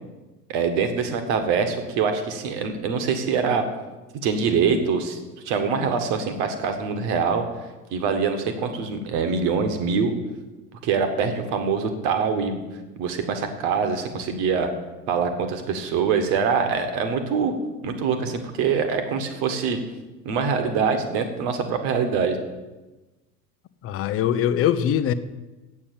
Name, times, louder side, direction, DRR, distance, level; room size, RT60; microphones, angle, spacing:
voice 1, 0.5-3.6 4.2-5.2 5.4-7.4 7.9-10.1 10.8-12.6 13.0-14.7 15.1-17.5 17.8-19.8 20.3-22.4, right 5 dB, 50° right, 7 dB, 1.7 m, -24 dB
voice 2, 23.8-25.1, left 10 dB, 30° left, 12 dB, 0.7 m, -22 dB
8.4 x 7.4 x 8.7 m, 1.2 s
figure-of-eight pair, 75°, 47 cm